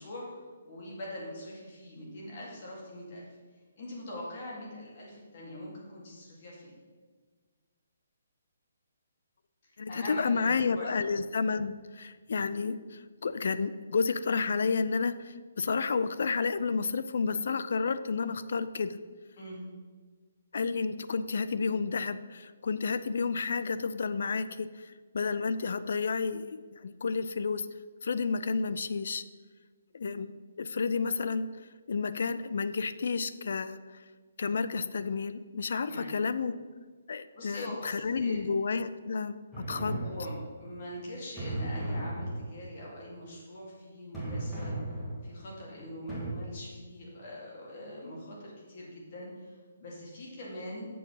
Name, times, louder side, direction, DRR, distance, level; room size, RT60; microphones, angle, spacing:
voice 1, 0.0-3.3 3.8-6.7 9.6-11.1 19.4-19.6 35.8-36.1 37.4-38.4 40.0-40.3 40.6-44.7 45.2-50.9, left 1 dB, 35° left, -3 dB, 2.3 m, -43 dB
voice 2, 9.8-19.0 20.5-27.7 28.0-29.2 29.9-31.5 31.9-34.0 34.4-36.5 37.1-40.0, left 5 dB, 55° left, 13 dB, 0.4 m, -31 dB
sound 1, 39.5-40.7 41.4-42.8 44.1-45.5 46.1-46.3, right 1 dB, 5° left, 1.5 m, -36 dB
7.0 x 6.0 x 5.5 m, 1.5 s
hypercardioid pair, 175°, 0 cm